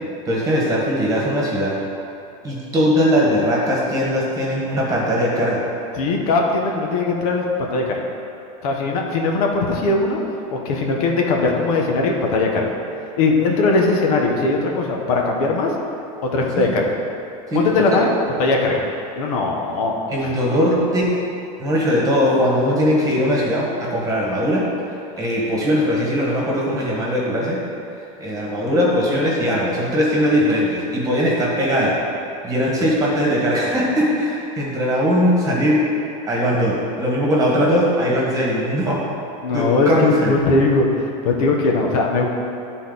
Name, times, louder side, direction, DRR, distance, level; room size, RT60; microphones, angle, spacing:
voice 1, 0.2-1.8 2.4-5.6 16.7-16.8 17.5-18.0 20.1-21.1 21.6-24.7 25.2-27.6 28.2-31.9 32.4-35.8 36.2-39.0 39.5-40.3, equal, 20° right, -4 dB, 1.5 m, -20 dB
voice 2, 6.0-8.0 8.6-10.2 10.5-12.7 13.2-15.7 16.2-16.9 17.5-18.1 18.4-18.8 19.2-19.9 20.2-20.3 37.6-37.7 39.4-40.9 41.2-42.3, left 3 dB, 85° left, 0 dB, 1.1 m, -19 dB
10.5 x 4.1 x 4.0 m, 2.7 s
supercardioid pair, 155°, 19 cm